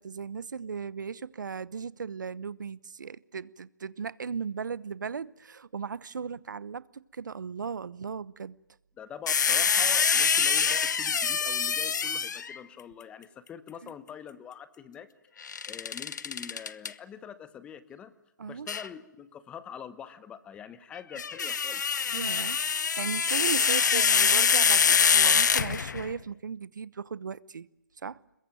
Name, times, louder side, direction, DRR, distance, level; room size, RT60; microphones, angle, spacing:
voice 1, 0.0-8.6 13.8-13.9 18.4-18.7 22.1-27.7 28.0-28.2, right 6 dB, 75° right, 1.0 m, -37 dB
voice 2, 9.0-15.1 15.7-18.1 18.5-21.8, left 8 dB, 10° left, 1.0 m, -44 dB
sound 1, 9.3-12.6 15.4-16.9 18.7-18.9 21.0-26.1, left 6 dB, 65° left, 1.0 m, -25 dB
23.0 x 22.0 x 9.0 m
hypercardioid pair, 160°, 10 cm